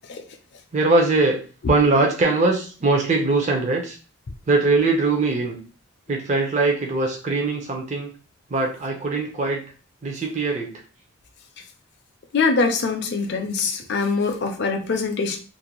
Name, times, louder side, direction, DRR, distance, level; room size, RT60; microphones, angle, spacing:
voice 1, 0.7-1.4 1.7-4.0 4.5-5.6 6.1-8.1 8.5-9.6 10.0-10.7, right 3 dB, 35° right, 0 dB, 0.5 m, -21 dB
voice 2, 12.3-15.4, left 4 dB, 50° left, 4 dB, 0.4 m, -23 dB
2.5 x 2.1 x 2.9 m, 0.37 s
head